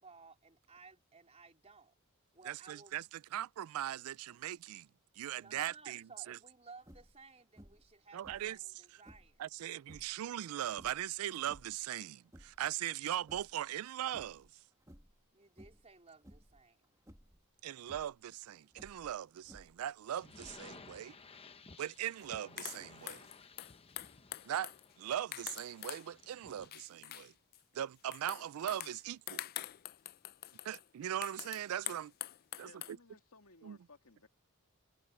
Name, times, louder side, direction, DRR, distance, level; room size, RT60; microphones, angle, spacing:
voice 1, 0.0-1.9 2.3-3.0 4.3-4.4 5.3-9.4 15.3-16.8, right 4 dB, 30° right, 3.9 m, -58 dB
voice 2, 2.5-4.9 5.2-6.4 8.1-9.0 9.4-14.5 17.6-21.2 21.8-23.3 24.4-24.7 25.0-27.3 27.7-29.5 30.6-32.1 32.6-32.7 33.6-33.8, right 11 dB, 75° right, 0.3 m, -40 dB
sound 1, 6.8-7.2 7.6-7.9 8.2-9.4 9.8-10.2 10.7-11.8 12.2-12.7 13.1-13.9 14.1-14.5 14.8-15.2 15.6-15.9 16.2-16.6 17.1-17.4 17.8-18.2 18.7-19.9 20.3-20.9, equal, 15° right, 2.0 m, -58 dB
sound 2, 20.1-26.8, left 4 dB, 25° left, 0.9 m, -57 dB
sound 3, 22.2-22.3 22.6-26.1 26.5-27.6 28.1-32.9, left 14 dB, 45° left, 0.3 m, -45 dB
voice 3, 32.6-34.3, left 4 dB, 75° left, 2.3 m, -60 dB
head